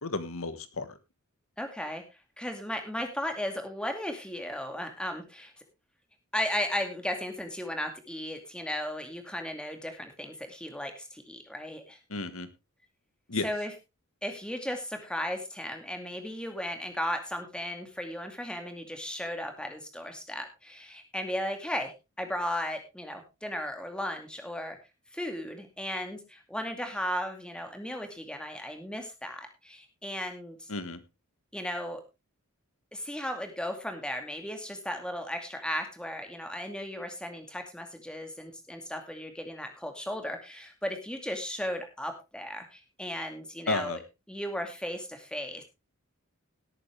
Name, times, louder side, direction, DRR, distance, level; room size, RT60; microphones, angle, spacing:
voice 1, 0.0-1.0 12.1-12.5 13.3-13.5 30.7-31.0 43.7-44.0, left 3 dB, 75° left, 12 dB, 1.6 m, -32 dB
voice 2, 1.6-2.0 2.4-5.5 6.3-12.0 13.4-13.7 14.2-24.8 25.1-30.7 31.5-32.0 32.9-44.0 44.3-45.6, left 1 dB, 5° left, 5 dB, 2.3 m, -35 dB
17.5 x 8.9 x 3.4 m, 0.26 s
head